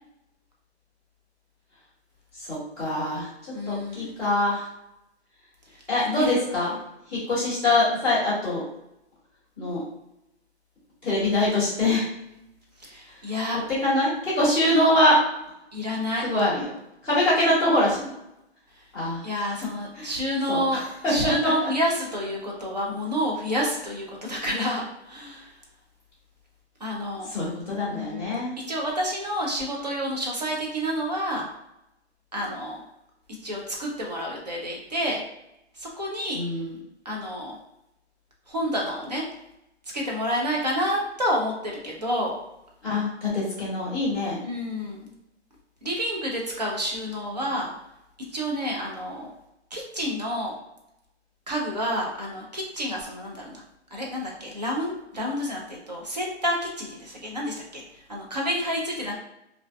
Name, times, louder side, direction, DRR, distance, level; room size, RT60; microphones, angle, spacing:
voice 1, 2.4-3.3 3.7-4.7 5.9-6.8 7.1-8.6 9.6-9.8 11.0-12.1 13.8-15.2 16.2-16.7 17.0-18.1 18.9-19.2 20.0-20.1 20.5-20.8 21.2-21.3 27.3-28.6 36.3-36.7 42.8-44.4, left 1 dB, 5° right, -17 dB, 0.8 m, -24 dB
voice 2, 3.5-4.2 5.7-6.3 12.8-13.6 15.7-16.2 19.2-25.5 26.8-27.3 27.9-28.4 28.7-31.5 32.3-32.8 33.4-35.2 35.7-36.4 37.0-37.6 38.5-39.2 39.9-42.4 44.4-45.1 45.8-47.7 48.3-49.3 49.7-50.5 51.5-53.6 53.9-59.2, equal, 35° right, -2 dB, 0.4 m, -29 dB
2.4 x 2.1 x 2.3 m, 0.86 s
hypercardioid pair, 170°, 35 cm